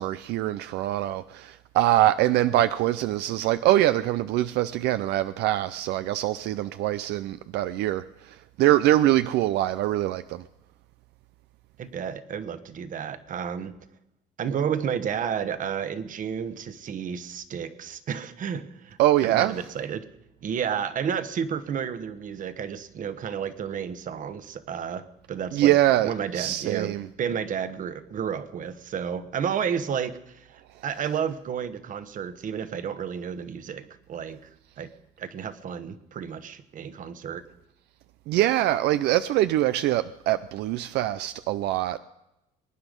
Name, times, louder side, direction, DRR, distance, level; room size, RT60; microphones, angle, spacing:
voice 1, 0.0-10.4 19.0-19.6 25.5-27.1 38.3-42.0, right 14 dB, 85° right, 0.5 m, -24 dB
voice 2, 11.8-13.8 14.4-20.1 20.4-25.7 26.0-34.4 34.8-34.9 35.2-37.4, right 7 dB, 50° right, 1.3 m, -31 dB
23.5 x 9.9 x 5.3 m
cardioid pair, 110°, 17 cm